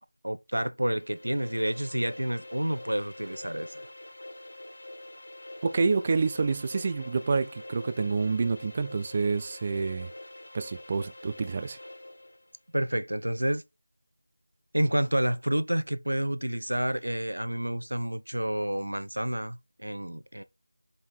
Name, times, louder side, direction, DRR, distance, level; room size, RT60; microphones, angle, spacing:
voice 1, 0.2-3.8 12.7-13.6 14.7-20.4, right 1 dB, 75° right, 1.0 m, -29 dB
sound 1, 0.9-12.5, left 1 dB, 50° left, 1.9 m, -45 dB
voice 2, 5.6-10.1 10.5-11.8, right 4 dB, 25° right, 0.6 m, -28 dB
5.6 x 5.5 x 4.5 m
figure-of-eight pair, 170°, 0 cm